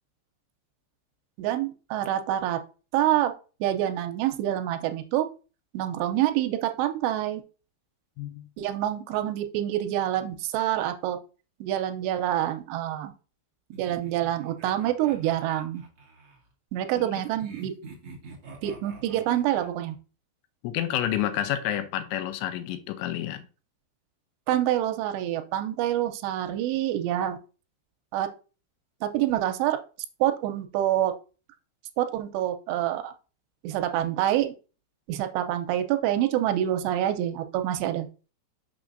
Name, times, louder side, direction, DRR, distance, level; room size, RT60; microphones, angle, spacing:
voice 1, 1.4-2.6 2.9-3.3 3.6-5.3 5.7-7.4 8.6-11.2 11.6-13.1 13.8-15.8 16.7-17.7 18.6-20.0 24.5-27.4 28.1-28.3 29.0-29.8 30.2-31.1 32.0-33.1 33.6-34.5 35.1-38.1, right 12 dB, 80° right, 2.5 m, -26 dB
sound 1, 13.7-16.4 17.4-20.0, right 4 dB, 50° right, 1.5 m, -46 dB
voice 2, 20.6-23.5, left 12 dB, 85° left, 2.9 m, -29 dB
6.1 x 6.1 x 2.5 m
omnidirectional pair, 5.4 m